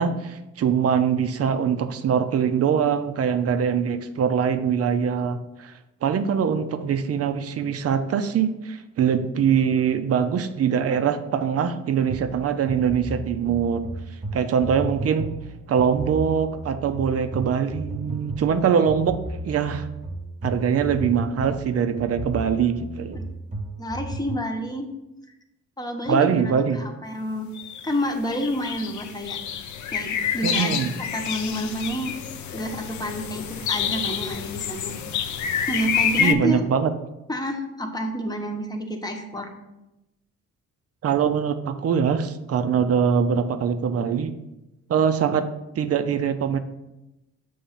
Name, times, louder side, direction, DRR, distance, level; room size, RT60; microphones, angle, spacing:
voice 1, 0.0-5.7 6.0-13.8 14.3-15.3 15.7-19.2 19.4-19.9 20.4-23.2 26.1-26.8 30.4-30.9 36.2-36.9 41.0-44.3 44.9-45.4 45.7-46.6, right 7 dB, 50° right, 9 dB, 0.6 m, -23 dB
sound 1, 12.1-24.5, right 2 dB, 25° right, 1.2 m, -34 dB
voice 2, 23.8-24.9 25.8-27.5 27.8-29.4 29.9-32.1 32.5-33.4 33.7-34.9 35.7-36.6 37.3-39.5, equal, 15° left, 3 dB, 1.0 m, -29 dB
sound 2, 27.5-27.9 28.3-36.3, left 8 dB, 70° left, 0.6 m, -28 dB
7.0 x 3.1 x 5.6 m, 0.96 s
cardioid pair, 90°, 30 cm